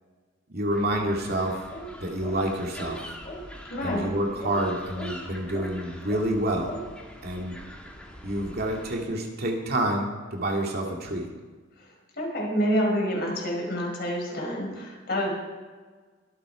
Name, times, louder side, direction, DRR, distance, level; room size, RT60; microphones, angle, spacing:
voice 1, 0.5-1.6 2.0-3.0 3.8-6.8 7.2-7.6 8.2-11.3, right 1 dB, 55° right, 0 dB, 2.4 m, -28 dB
sound 1, 0.7-9.0, equal, 5° left, 2.0 m, -45 dB
sound 2, 1.7-1.9 2.2-2.4 2.8-3.0 3.3-3.4 3.8-4.0 4.4-4.6 5.0-5.1 5.5-5.7 6.1-6.3 6.7-6.9, right 1 dB, 35° left, 3.6 m, -38 dB
voice 2, 3.7-4.1 12.2-15.3, equal, 55° left, -1 dB, 5.1 m, -27 dB
23.5 x 8.0 x 5.0 m, 1.4 s
head